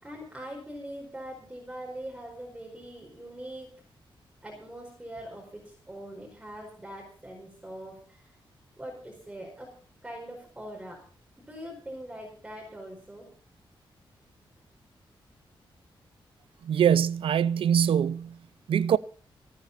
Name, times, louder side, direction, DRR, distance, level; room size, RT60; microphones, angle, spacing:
voice 1, 0.0-3.7 4.4-8.4 8.8-9.7 10.0-11.0 11.5-13.3, right 1 dB, 10° right, 4.8 m, -42 dB
voice 2, 16.6-18.4 18.7-19.0, right 8 dB, 85° right, 0.6 m, -23 dB
28.0 x 9.6 x 4.2 m
wide cardioid pair, 170°, 9 cm